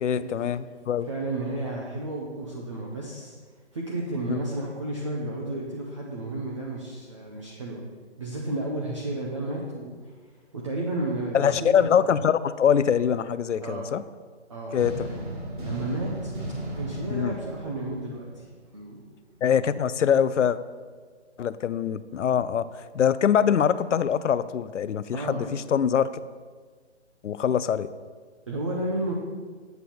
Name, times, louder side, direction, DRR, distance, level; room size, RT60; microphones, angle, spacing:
voice 1, 0.0-1.1 4.3-4.4 11.3-14.0 14.7-15.1 17.1-17.3 19.4-20.6 21.4-22.7 22.9-26.1 27.2-27.9, left 8 dB, 90° left, 15 dB, 0.5 m, -23 dB
voice 2, 1.1-3.4 3.7-7.8 8.2-11.9 13.6-13.9 14.5-16.3 16.7-19.0 25.1-25.5 28.5-29.1, right 2 dB, 25° right, -3 dB, 0.7 m, -32 dB
sound 1, 14.8-18.7, right 1 dB, 40° right, 1.9 m, -36 dB
8.1 x 6.7 x 4.2 m, 1.5 s
hypercardioid pair, 165°, 35 cm